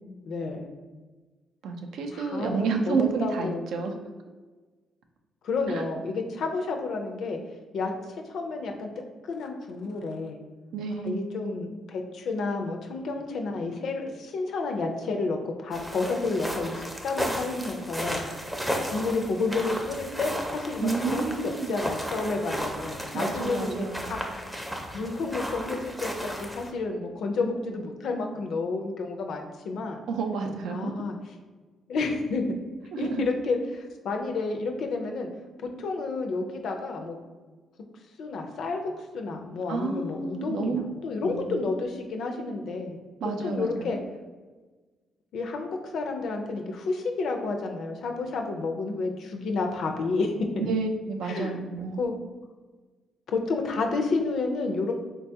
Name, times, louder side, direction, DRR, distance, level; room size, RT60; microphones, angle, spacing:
voice 1, 0.2-0.7 2.1-2.9 3.2-3.6 5.4-7.4 7.7-8.9 9.3-10.4 11.0-18.2 18.9-24.2 24.9-30.0 30.7-31.1 31.9-32.5 33.0-35.3 35.8-37.1 38.2-43.0 43.4-44.0 45.3-50.7 51.2-51.6 52.0-52.1 53.3-54.9, left 3 dB, 70° left, 3 dB, 0.4 m, -30 dB
voice 2, 1.6-4.0 5.7-5.8 10.7-11.3 20.8-21.7 23.1-24.2 30.1-31.0 32.9-33.2 39.7-40.8 41.2-41.6 43.2-44.0 50.6-52.1, right 4 dB, 80° right, 5 dB, 0.4 m, -30 dB
sound 1, 15.7-26.7, equal, 5° right, 0.5 m, -34 dB
3.7 x 2.3 x 2.7 m, 1.3 s
cardioid pair, 90°, 0 cm